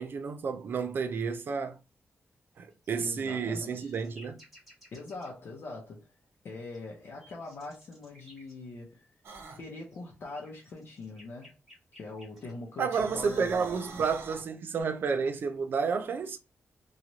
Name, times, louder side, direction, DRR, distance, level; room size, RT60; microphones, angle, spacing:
voice 1, 0.0-1.8 2.6-4.4 12.8-16.4, right 5 dB, 55° right, 0.4 m, -31 dB
sound 1, 2.7-5.3 6.7-8.5 9.8-12.5 14.2-14.8, left 1 dB, 5° right, 1.4 m, -57 dB
voice 2, 3.0-3.9 4.9-6.1 6.4-9.1 9.6-11.5 11.9-14.1, left 3 dB, 60° left, 0.7 m, -42 dB
sound 2, 9.2-9.6 12.8-14.5, right 4 dB, 75° right, 0.9 m, -45 dB
3.0 x 2.4 x 2.7 m
wide cardioid pair, 150°, 4 cm